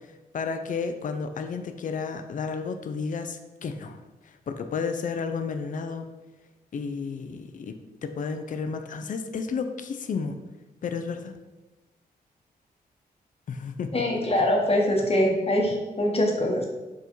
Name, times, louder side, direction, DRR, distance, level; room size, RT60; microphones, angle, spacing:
voice 1, 0.3-4.0 4.5-6.1 6.7-10.4 10.8-11.3 13.5-14.0, left 5 dB, 50° left, 7 dB, 0.5 m, -32 dB
voice 2, 13.9-16.7, left 1 dB, 35° left, 0 dB, 1.1 m, -23 dB
4.7 x 2.5 x 4.4 m, 1.1 s
cardioid pair, 60°, 17 cm